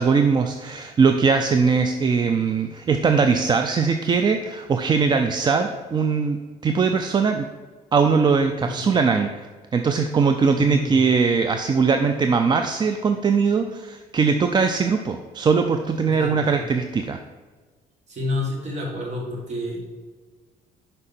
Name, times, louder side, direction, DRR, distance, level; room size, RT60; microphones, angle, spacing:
voice 1, 0.0-6.4 6.6-7.5 7.9-9.3 9.7-17.2, right 5 dB, 25° right, 6 dB, 0.3 m, -20 dB
voice 2, 10.5-10.9 16.1-16.6 18.1-19.8, left 2 dB, 40° right, -1 dB, 1.9 m, -29 dB
5.4 x 4.9 x 4.2 m, 1.4 s
cardioid pair, 110°, 17 cm